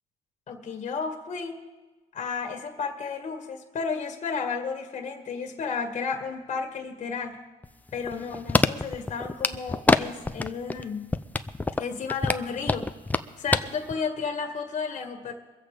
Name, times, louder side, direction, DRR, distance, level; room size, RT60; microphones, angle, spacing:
voice 1, 0.5-1.6 2.1-7.4 7.9-11.2 11.8-12.9 13.4-15.3, left 5 dB, 40° left, 4 dB, 1.9 m, -32 dB
sound 1, 7.6-10.0 10.3-10.8 11.1-13.6 13.9-14.0, left 2 dB, 10° left, 0.5 m, -24 dB
23.5 x 7.9 x 5.1 m, 1.2 s
cardioid pair, 110°, 17 cm